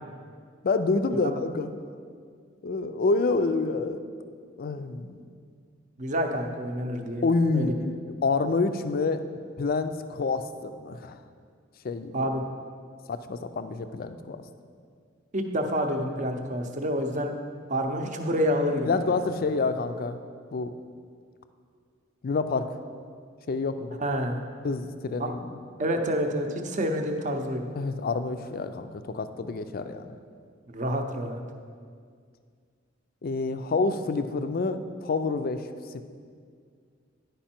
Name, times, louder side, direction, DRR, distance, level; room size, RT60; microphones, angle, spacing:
voice 1, 0.6-1.7 2.6-4.0 4.6-5.2 7.2-7.9 8.2-9.2 9.6-11.2 11.8-12.3 13.1-14.4 18.9-20.2 20.5-20.7 22.2-22.7 23.5-24.0 24.6-25.5 27.8-30.1 33.2-35.7 35.9-36.0, left 3 dB, 45° left, 10 dB, 0.4 m, -28 dB
voice 2, 6.0-7.3 7.5-7.7 12.1-12.4 15.3-17.3 17.7-19.2 24.0-24.4 25.2-25.3 25.8-27.6 30.7-31.4, equal, 40° right, 4 dB, 0.7 m, -28 dB
10.0 x 5.3 x 4.3 m, 2.1 s
head